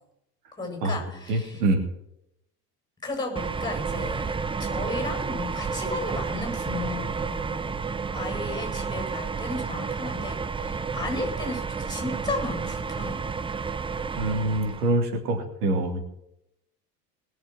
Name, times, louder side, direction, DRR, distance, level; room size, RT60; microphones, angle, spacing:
voice 1, 0.6-1.6 3.0-7.8 8.1-13.4, left 2 dB, 10° left, 3 dB, 7.7 m, -34 dB
voice 2, 1.3-1.8 14.2-16.0, right 2 dB, 70° right, 4 dB, 3.2 m, -25 dB
sound 1, 3.4-15.0, right 5 dB, 10° right, 0.6 m, -31 dB
21.0 x 7.3 x 6.3 m, 0.80 s
figure-of-eight pair, 70°, 48 cm